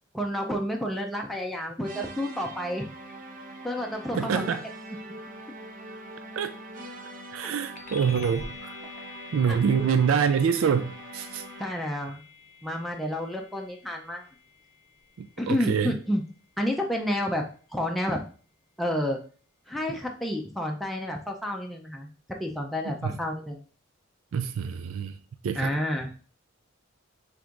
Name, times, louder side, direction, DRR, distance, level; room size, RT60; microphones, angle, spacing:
voice 1, 0.1-2.8 3.6-4.6 9.5-9.9 11.6-12.2 12.6-14.3 15.4-16.2 16.6-17.5 17.7-18.2 18.8-19.2 19.7-22.1 22.4-23.6 25.6-26.1, left 1 dB, ahead, 0.5 m, -30 dB
sound 1, 1.8-11.9, right 1 dB, 45° right, 0.6 m, -43 dB
voice 2, 4.2-4.6 6.4-6.5 7.3-8.7 9.3-11.4 15.2-16.0 23.0-23.1 24.3-25.1 25.4-25.7, right 7 dB, 85° right, 0.4 m, -26 dB
sound 2, 7.8-17.6, left 5 dB, 35° left, 0.7 m, -48 dB
6.1 x 3.4 x 2.5 m
head